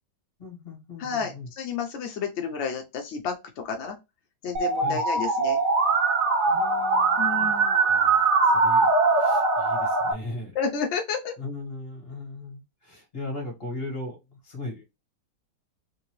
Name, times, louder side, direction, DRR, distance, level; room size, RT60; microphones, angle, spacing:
voice 1, 0.4-1.5 4.8-5.0 6.4-7.5 7.8-8.9 9.2-10.5 11.4-14.2 14.4-14.9, left 2 dB, 35° left, 1.7 m, -38 dB
voice 2, 1.0-4.0 4.4-5.6 7.2-7.8 10.5-11.3, left 6 dB, 70° left, 0.6 m, -31 dB
Musical instrument, 4.6-10.1, right 3 dB, 70° right, 1.4 m, -22 dB
3.7 x 2.9 x 3.0 m
omnidirectional pair, 1.9 m